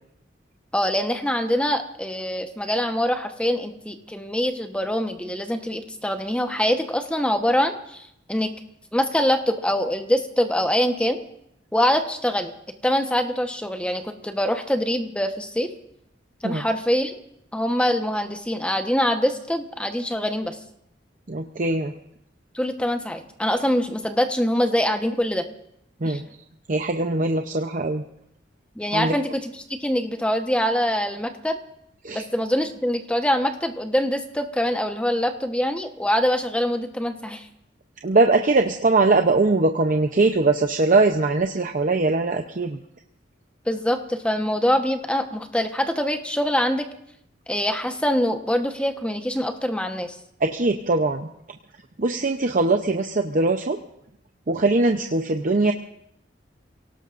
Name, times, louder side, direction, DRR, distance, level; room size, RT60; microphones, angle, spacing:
voice 1, 0.7-8.5 8.9-11.2 11.7-12.5 12.8-15.7 16.4-17.1 17.5-20.6 22.5-25.4 26.0-26.2 28.8-29.5 29.8-31.6 32.1-37.5 43.7-46.9 47.5-50.1, equal, 5° left, 6 dB, 1.1 m, -24 dB
voice 2, 21.3-21.9 26.0-26.2 26.7-28.0 28.9-29.1 32.0-32.2 38.0-42.8 50.4-51.3 52.0-53.8 54.5-55.7, right 3 dB, 45° right, 5 dB, 0.7 m, -21 dB
29.5 x 18.0 x 2.6 m, 0.76 s
head